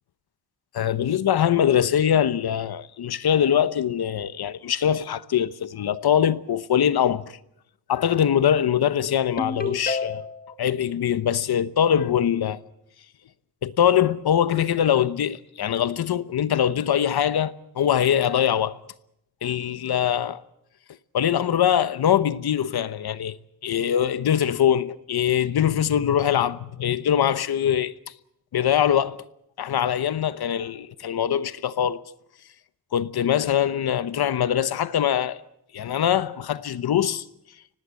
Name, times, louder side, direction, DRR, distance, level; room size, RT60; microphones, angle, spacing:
voice 1, 0.7-7.4 7.9-10.3 10.6-12.6 13.6-18.8 19.4-20.4 21.1-23.4 23.6-27.9 28.5-29.2 29.6-32.0 32.9-35.4 35.7-37.2, left 9 dB, 85° left, 1.0 m, -22 dB
Ringtone, 9.4-10.5, left 4 dB, 25° left, 1.6 m, -29 dB
25.0 x 19.0 x 7.6 m
wide cardioid pair, 115°, 37 cm